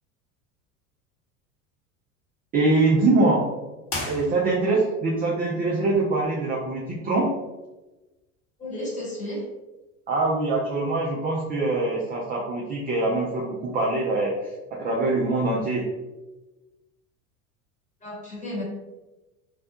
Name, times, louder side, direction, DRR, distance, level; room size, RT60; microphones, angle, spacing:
voice 1, 2.5-3.4 4.0-7.3 10.1-14.5 14.8-15.9, right 2 dB, 25° right, -3 dB, 0.4 m, -23 dB
sound 1, 3.8-4.9, left 2 dB, 45° left, 1.0 m, -34 dB
voice 2, 8.6-9.4 18.0-18.6, left 1 dB, 15° left, -4 dB, 1.0 m, -33 dB
2.5 x 2.1 x 2.7 m, 1.1 s
hypercardioid pair, 80°, 42 cm